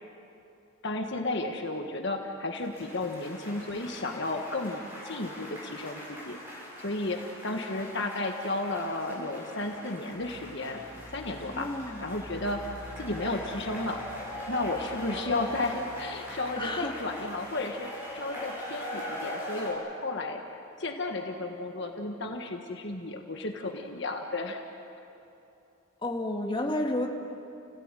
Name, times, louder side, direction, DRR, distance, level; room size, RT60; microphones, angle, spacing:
voice 1, 0.8-10.8 11.1-11.7 12.0-12.6 13.0-14.0 14.5-24.6, left 2 dB, 55° left, 3 dB, 1.5 m, -33 dB
sound 1, 2.6-19.7, left 1 dB, 10° right, 7.0 m, -42 dB
sound 2, 10.1-18.8, equal, 60° right, 2.3 m, -50 dB
voice 2, 11.5-12.0 16.5-16.9 26.0-27.1, left 1 dB, 20° left, 1 dB, 2.1 m, -31 dB
29.5 x 17.0 x 9.1 m, 2.8 s
head